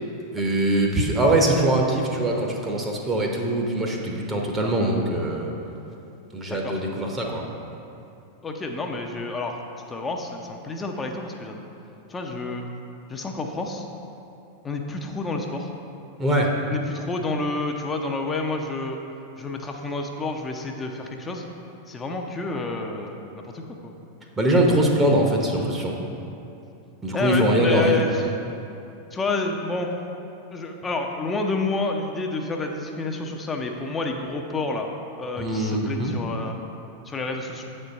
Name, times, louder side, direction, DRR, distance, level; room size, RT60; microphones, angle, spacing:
voice 1, 0.3-5.5 6.3-7.4 16.2-16.5 24.4-26.0 27.0-27.9 35.4-36.1, right 1 dB, 15° right, 0 dB, 0.8 m, -22 dB
voice 2, 8.4-9.6 9.9-11.6 12.1-12.6 13.1-13.9 14.6-15.7 16.7-19.0 19.4-21.5 21.9-23.9 27.1-28.4 29.1-29.9 30.5-34.9 35.2-36.6 37.1-37.6, left 3 dB, 15° left, 2 dB, 0.6 m, -29 dB
8.1 x 4.4 x 5.2 m, 2.7 s
figure-of-eight pair, 90°, 0 cm